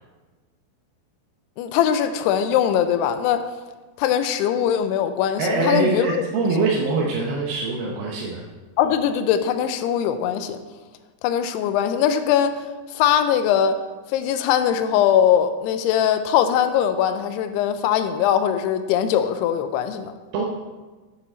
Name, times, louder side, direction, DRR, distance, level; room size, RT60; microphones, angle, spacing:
voice 1, 1.6-3.5 4.0-6.1 8.8-10.6 11.2-13.8 14.1-20.1, left 9 dB, 85° left, 10 dB, 2.6 m, -21 dB
voice 2, 5.4-8.4 20.3-20.4, right 3 dB, 75° right, -3 dB, 2.4 m, -23 dB
9.1 x 7.0 x 4.3 m, 1.3 s
omnidirectional pair, 4.8 m